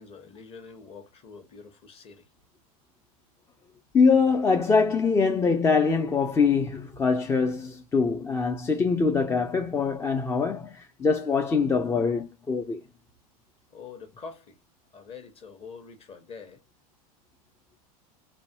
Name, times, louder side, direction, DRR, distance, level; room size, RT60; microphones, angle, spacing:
voice 1, 0.0-2.3 13.7-14.6 14.9-16.6, left 5 dB, 30° left, 1.0 m, -45 dB
voice 2, 3.9-12.8, left 5 dB, 15° left, 0.3 m, -23 dB
3.1 x 2.2 x 2.7 m
hypercardioid pair, 115°, 19 cm